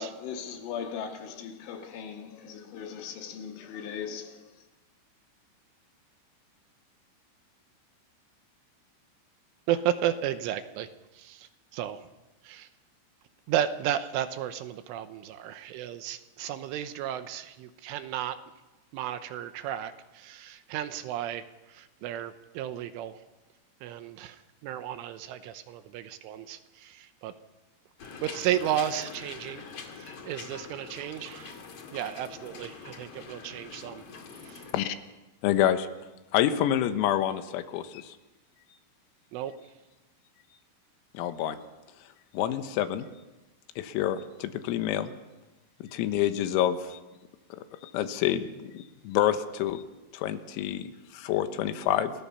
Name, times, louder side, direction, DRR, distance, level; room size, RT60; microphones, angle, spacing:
voice 1, 0.0-4.6, left 7 dB, 70° left, 4.2 m, -39 dB
voice 2, 9.7-10.9 11.1-12.0 12.4-12.7 13.5-18.4 18.9-23.2 23.8-27.3 28.2-29.6 29.9-31.5 31.9-34.0 34.4-34.6 39.3-39.7, right 11 dB, 80° right, 3.3 m, -33 dB
sound 1, 28.0-34.7, left 5 dB, 45° left, 2.1 m, -44 dB
voice 3, 35.4-35.9 36.3-38.2 41.2-41.6 42.3-43.1 43.8-45.1 45.8-47.0 47.5-49.8 50.1-52.1, left 11 dB, 85° left, 3.9 m, -28 dB
27.5 x 20.5 x 5.7 m
omnidirectional pair, 6.0 m